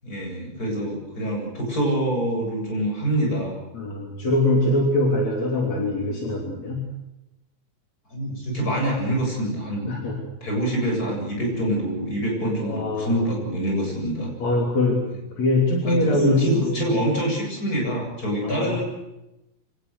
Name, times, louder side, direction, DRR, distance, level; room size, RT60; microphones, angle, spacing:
voice 1, 0.0-3.5 8.1-9.9 10.4-14.3 15.8-18.8, right 1 dB, 30° left, 0 dB, 8.5 m, -25 dB
voice 2, 3.7-6.9 9.9-10.2 12.4-13.2 14.4-15.0 15.4-16.9 18.4-18.8, left 1 dB, 65° left, 0 dB, 4.5 m, -23 dB
26.0 x 18.5 x 8.1 m, 0.94 s
omnidirectional pair, 3.4 m